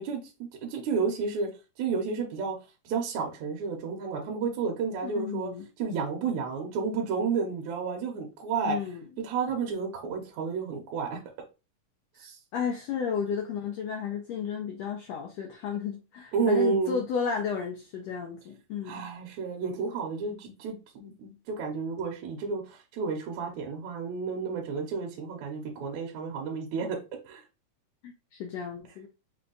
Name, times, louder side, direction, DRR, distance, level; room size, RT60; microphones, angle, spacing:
voice 1, 0.0-1.5 1.8-2.6 2.9-5.5 5.8-8.8 9.2-11.2 12.2-12.4 16.3-17.0 18.8-27.0 27.3-27.4, right 5 dB, 70° right, 2.0 m, -31 dB
voice 2, 5.0-5.6 8.7-9.1 12.5-19.1 28.0-29.1, left 7 dB, 80° left, 1.5 m, -33 dB
5.3 x 2.2 x 3.8 m
omnidirectional pair, 3.7 m